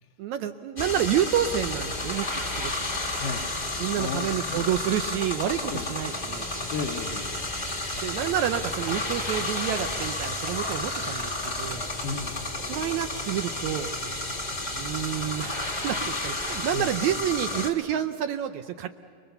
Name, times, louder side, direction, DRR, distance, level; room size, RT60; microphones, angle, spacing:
voice 1, 0.2-2.7 3.8-6.5 8.0-11.9 12.7-13.9 14.8-18.9, right 10 dB, 75° right, 8 dB, 1.8 m, -29 dB
sound 1, 0.8-17.7, left 2 dB, 20° left, 1.2 m, -31 dB
voice 2, 3.1-3.6 3.9-4.7 5.7-5.9 6.7-7.4 12.0-12.5 16.7-16.9, left 5 dB, 75° left, -2 dB, 2.7 m, -34 dB
sound 2, 7.7-12.1 12.4-12.5 12.7-12.9 13.2-13.3, right 5 dB, 50° right, 2.0 m, -42 dB
29.0 x 21.0 x 6.9 m, 2.2 s
omnidirectional pair, 3.8 m